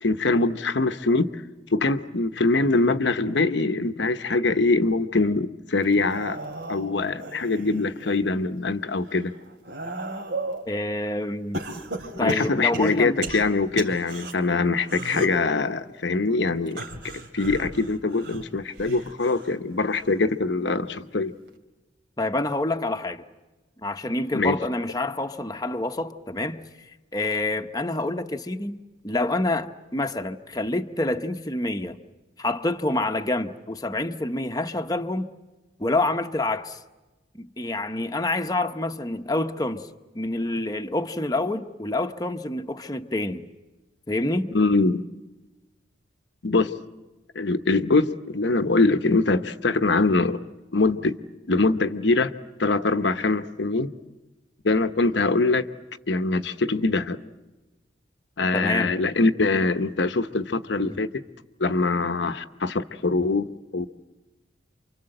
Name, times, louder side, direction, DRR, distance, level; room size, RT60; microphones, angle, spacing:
voice 1, 0.0-1.4 1.7-6.4 6.7-9.3 12.2-21.3 24.3-24.6 44.5-45.0 46.4-46.7 47.3-50.4 50.7-51.2 51.5-52.3 52.6-53.9 54.6-55.7 56.1-57.2 58.4-61.2 61.6-63.9, left 3 dB, 65° left, 0.9 m, -23 dB
sound 1, 5.9-8.2 8.7-10.7 11.5-14.3 14.8-15.5 16.7-19.5 19.9-20.3 21.5-21.6, right 1 dB, 60° right, 3.1 m, -35 dB
voice 2, 10.7-11.7 12.2-13.2 22.2-23.2 23.8-26.6 27.1-32.0 32.4-35.3 35.8-36.8 37.3-39.9 40.1-43.5 44.1-44.5 58.5-59.0 60.9-61.0, left 2 dB, 20° left, 0.9 m, -27 dB
28.5 x 25.0 x 7.8 m
head